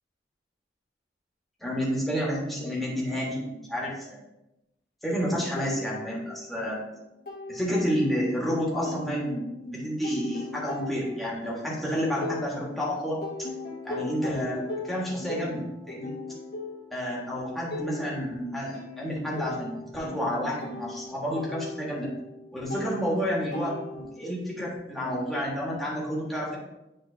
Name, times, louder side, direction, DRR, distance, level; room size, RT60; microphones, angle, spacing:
voice 1, 1.6-4.2 5.0-6.8 7.5-13.5 13.8-16.1 16.9-22.1 22.5-26.6, equal, ahead, -6 dB, 1.6 m, -30 dB
sound 1, 5.6-6.7 7.0-8.5 8.9-12.9 13.2-24.3, left 3 dB, 55° left, 1.4 m, -40 dB
10.0 x 3.8 x 2.8 m, 0.93 s
head